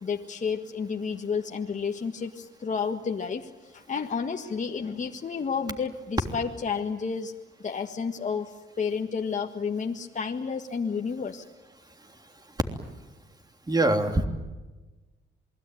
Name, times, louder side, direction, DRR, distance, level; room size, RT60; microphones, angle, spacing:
voice 1, 0.0-7.3 7.6-11.4, left 5 dB, 40° left, 3 dB, 1.6 m, -31 dB
voice 2, 13.7-14.2, right 2 dB, 20° right, 5 dB, 3.2 m, -23 dB
27.5 x 21.0 x 9.3 m, 1.2 s
cardioid pair, 90°, 20 cm